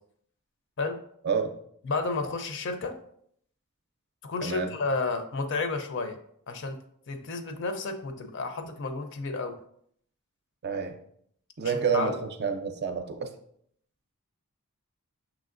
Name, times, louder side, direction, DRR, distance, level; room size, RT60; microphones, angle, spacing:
voice 1, 1.8-3.0 4.2-6.2 6.5-6.8 7.1-9.6 11.6-12.2, left 3 dB, 60° left, 7 dB, 0.5 m, -31 dB
voice 2, 10.6-11.0 11.6-13.3, right 6 dB, 50° right, 6 dB, 0.5 m, -28 dB
6.1 x 3.0 x 2.5 m, 0.66 s
head